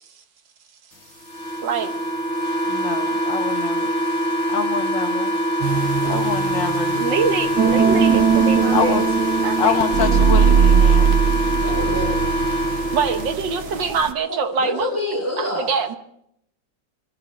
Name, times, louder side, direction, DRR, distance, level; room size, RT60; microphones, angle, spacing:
sound 1, 1.3-13.3, equal, 40° left, 2.2 m, -23 dB
voice 1, 1.6-1.9 6.0-6.2 6.9-9.0 9.4-9.8 12.9-14.9 15.4-16.0, right 5 dB, 85° right, 7 dB, 2.0 m, -24 dB
voice 2, 2.7-4.0 4.5-5.4 6.0-7.0 8.7-9.0 9.6-11.2, left 7 dB, 90° left, 6 dB, 2.1 m, -26 dB
sound 2, 5.6-14.1, right 7 dB, 65° right, 1.5 m, -20 dB
voice 3, 11.6-12.3 13.3-13.9 14.6-15.7, left 1 dB, 10° right, -6 dB, 5.6 m, -28 dB
23.0 x 13.5 x 4.3 m, 0.73 s
omnidirectional pair, 2.0 m